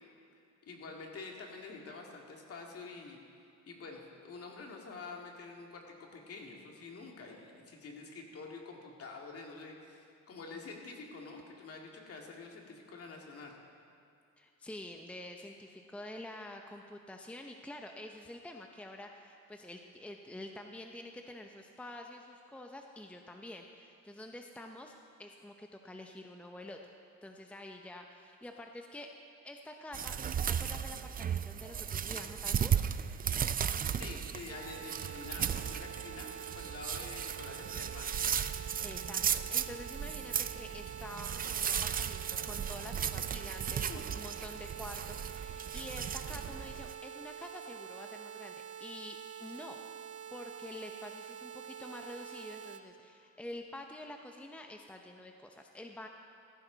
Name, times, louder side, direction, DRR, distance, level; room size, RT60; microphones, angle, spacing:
voice 1, 0.7-3.2 3.7-13.6 34.0-38.1 43.6-44.0, left 3 dB, 50° left, 0 dB, 2.4 m, -47 dB
voice 2, 14.4-24.9 25.2-26.9 27.2-29.1 29.4-32.7 38.8-48.5 48.8-49.8 50.3-56.1, left 1 dB, 5° left, 3 dB, 0.7 m, -47 dB
sound 1, 29.9-46.9, right 8 dB, 30° right, 0.4 m, -35 dB
sound 2, 34.5-52.8, right 8 dB, 50° right, 0.8 m, -47 dB
15.0 x 14.0 x 4.0 m, 2.6 s
cardioid pair, 105°, 30 cm